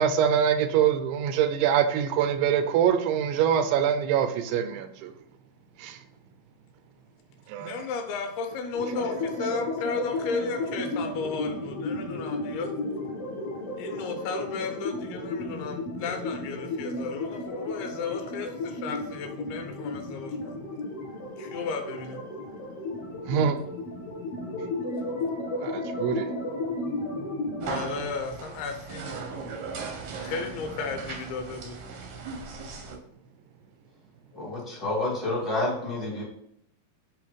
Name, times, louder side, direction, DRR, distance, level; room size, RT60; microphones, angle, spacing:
voice 1, 0.0-5.1 5.8-6.0 7.5-7.8 23.3-23.6 25.6-26.3, right 8 dB, 90° right, 2.7 m, -24 dB
voice 2, 7.6-12.7 13.8-20.6 21.4-22.2 26.1-26.2 27.6-29.2 30.2-31.8 34.3-34.4, left 5 dB, 80° left, 2.9 m, -34 dB
sound 1, 8.7-27.7, left 2 dB, 50° left, 1.9 m, -33 dB
sound 2, 27.6-33.0, right 4 dB, 70° right, 1.8 m, -37 dB
voice 3, 34.3-36.2, left 2 dB, ahead, 0.8 m, -29 dB
7.6 x 3.0 x 5.1 m
omnidirectional pair, 4.6 m